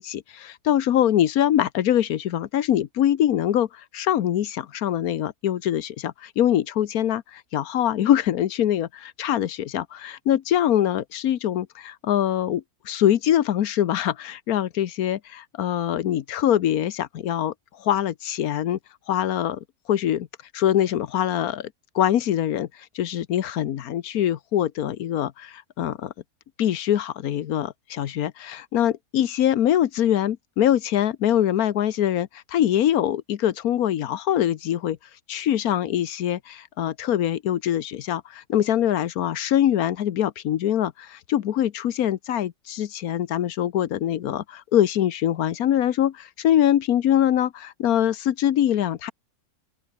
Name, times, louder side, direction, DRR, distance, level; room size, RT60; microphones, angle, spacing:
voice 1, 0.0-3.7 3.9-17.5 17.8-18.8 19.1-19.6 19.9-20.3 20.5-21.7 21.9-22.7 22.9-26.1 26.6-35.0 35.3-49.1, left 11 dB, 80° left, 1.3 m, -23 dB
omnidirectional pair, 1.6 m